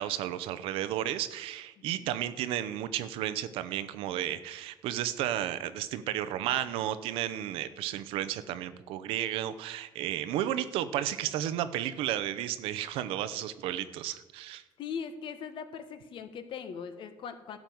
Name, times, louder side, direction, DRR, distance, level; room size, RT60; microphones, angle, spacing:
voice 1, 0.0-14.6, right 12 dB, 85° right, 13 dB, 0.7 m, -33 dB
voice 2, 14.8-17.6, left 7 dB, 65° left, 10 dB, 1.2 m, -40 dB
12.0 x 5.3 x 7.8 m, 1.1 s
cardioid pair, 95°, 9 cm